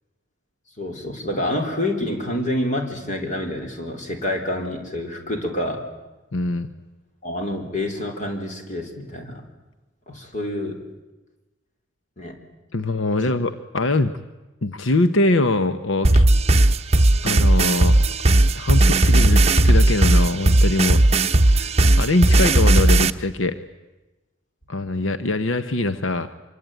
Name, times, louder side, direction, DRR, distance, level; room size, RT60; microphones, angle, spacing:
voice 1, 0.8-5.9 7.2-9.4 10.1-10.8 12.2-12.4 13.2-13.3, left 1 dB, 40° left, 4 dB, 4.3 m, -28 dB
voice 2, 6.3-6.7 12.7-14.1 14.6-16.2 17.2-17.9 18.5-21.0 21.2-23.6 24.7-26.3, left 2 dB, 80° left, 11 dB, 1.0 m, -23 dB
sound 1, 16.0-23.1, right 2 dB, 30° right, 0.9 m, -16 dB
25.5 x 24.0 x 9.3 m, 1.1 s
head